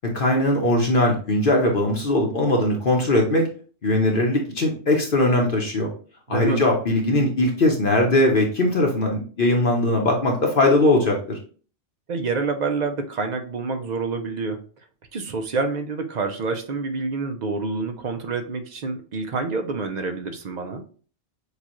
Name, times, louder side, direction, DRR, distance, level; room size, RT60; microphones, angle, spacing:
voice 1, 0.0-3.5 3.8-5.9 6.3-11.4, left 1 dB, 50° left, 0 dB, 1.0 m, -20 dB
voice 2, 6.3-6.6 12.1-14.6 15.1-20.8, right 4 dB, 50° right, 6 dB, 0.5 m, -27 dB
6.7 x 2.4 x 3.0 m, 0.40 s
omnidirectional pair, 1.3 m